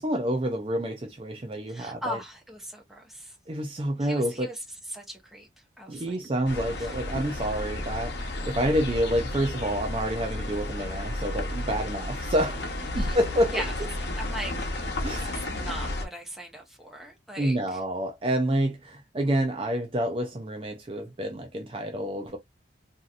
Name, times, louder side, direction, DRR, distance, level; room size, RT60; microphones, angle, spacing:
voice 1, 0.0-2.2 3.5-4.5 5.9-13.9 15.0-15.3 17.4-22.4, equal, 30° right, 0.4 m, -28 dB
voice 2, 1.7-3.3 4.0-4.6 4.9-5.5 5.8-6.1 6.7-6.9 12.9-13.2 13.5-13.7 14.2-14.5 15.1-17.8, equal, ahead, 0.7 m, -38 dB
sound 1, 6.5-16.1, left 1 dB, 65° left, 0.9 m, -32 dB
3.0 x 2.7 x 2.4 m
head